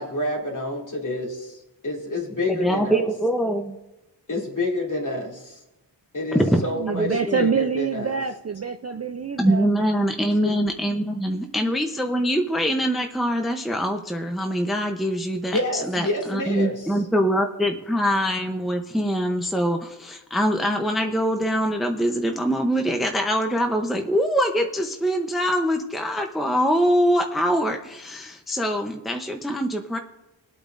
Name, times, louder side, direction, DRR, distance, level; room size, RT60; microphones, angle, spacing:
voice 1, 0.0-1.6 1.8-3.0 4.3-5.6 6.1-8.2 10.4-10.5 15.5-16.9, left 1 dB, 40° left, -1 dB, 2.5 m, -28 dB
voice 2, 2.5-3.8 6.3-6.6 7.0-7.4 9.4-30.0, equal, ahead, 4 dB, 0.7 m, -23 dB
voice 3, 6.7-9.7, right 6 dB, 35° right, 8 dB, 0.4 m, -26 dB
21.5 x 8.6 x 2.6 m, 0.93 s
wide cardioid pair, 105°, 45 cm